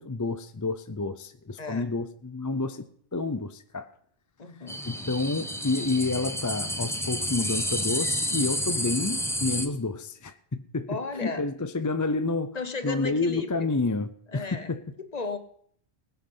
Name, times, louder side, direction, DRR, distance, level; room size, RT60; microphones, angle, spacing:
voice 1, 0.0-2.8 3.1-3.9 4.8-10.9 11.2-12.6 12.8-14.8, left 3 dB, 25° left, 0.5 m, -29 dB
voice 2, 1.6-1.9 4.4-4.8 10.9-11.4 12.5-13.7 14.3-14.7 15.0-15.4, left 4 dB, 40° left, 1.1 m, -35 dB
sound 1, 4.7-9.7, equal, 5° left, 1.0 m, -30 dB
20.0 x 7.9 x 5.5 m
omnidirectional pair, 1.1 m